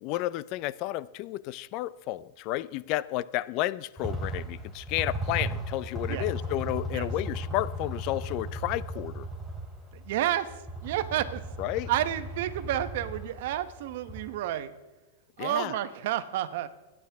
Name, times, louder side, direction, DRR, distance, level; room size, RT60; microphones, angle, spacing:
voice 1, 0.0-9.3 11.6-11.9 15.4-15.7, left 16 dB, 50° left, 0.4 m, -32 dB
sound 1, 4.0-14.3, equal, 5° left, 3.1 m, -36 dB
voice 2, 9.9-11.4 11.9-14.7 15.4-16.7, right 12 dB, 65° right, 1.0 m, -30 dB
24.5 x 10.0 x 3.5 m
hypercardioid pair, 130°, 0 cm